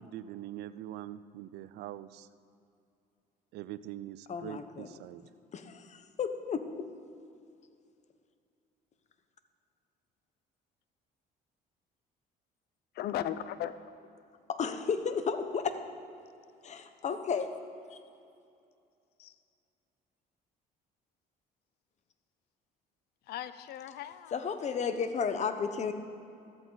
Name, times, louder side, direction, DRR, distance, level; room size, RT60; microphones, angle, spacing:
voice 1, 0.0-2.3 3.5-5.2, right 13 dB, 80° right, 15 dB, 0.5 m, -43 dB
voice 2, 4.3-4.9 5.5-6.9 14.5-15.8 16.6-17.5 17.9-18.0 24.3-25.9, left 6 dB, 45° left, 9 dB, 1.0 m, -33 dB
voice 3, 13.0-13.7 19.2-19.3 23.3-24.4, left 11 dB, 70° left, 13 dB, 0.6 m, -37 dB
14.0 x 13.5 x 4.0 m, 2.6 s
cardioid pair, 110°, 17 cm